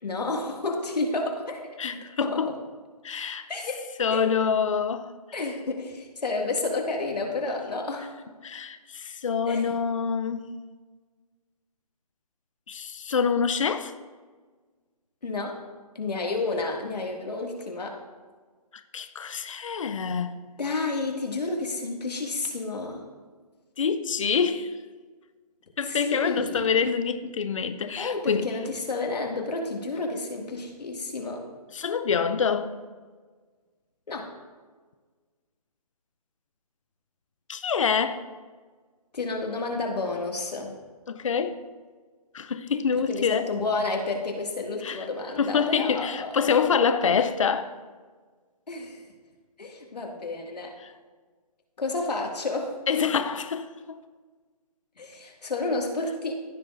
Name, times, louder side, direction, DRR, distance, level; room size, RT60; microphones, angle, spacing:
voice 1, 0.0-2.5 3.5-3.8 4.1-4.2 5.3-8.1 9.5-9.7 15.2-15.6 16.0-18.0 20.6-23.1 25.8-26.7 28.0-31.4 34.1-34.3 39.1-40.8 42.9-46.3 47.0-47.3 48.7-49.1 49.6-50.7 51.8-52.7 55.0-56.3, left 3 dB, 90° left, 2.0 m, -30 dB
voice 2, 1.8-2.5 3.0-3.5 4.0-5.1 8.4-10.5 12.7-13.9 18.9-20.5 23.8-24.8 25.8-28.5 31.7-32.7 37.5-38.2 41.1-41.6 42.3-43.5 44.8-45.0 45.4-47.6 50.8-50.9 52.9-54.0, left 6 dB, 55° left, 0.5 m, -26 dB
15.0 x 6.3 x 2.5 m
hypercardioid pair, 175°, 20 cm